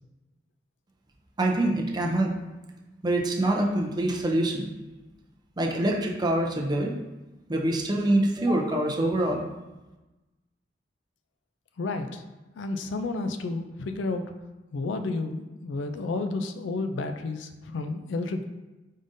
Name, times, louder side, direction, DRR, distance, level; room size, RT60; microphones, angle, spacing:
voice 1, 1.4-2.3 3.0-4.7 5.6-6.9 7.5-9.4, right 1 dB, 25° right, 0 dB, 0.5 m, -25 dB
voice 2, 11.8-12.2 12.6-14.2 14.7-18.4, left 3 dB, 80° left, 7 dB, 0.4 m, -31 dB
5.1 x 3.6 x 2.6 m, 1.1 s
head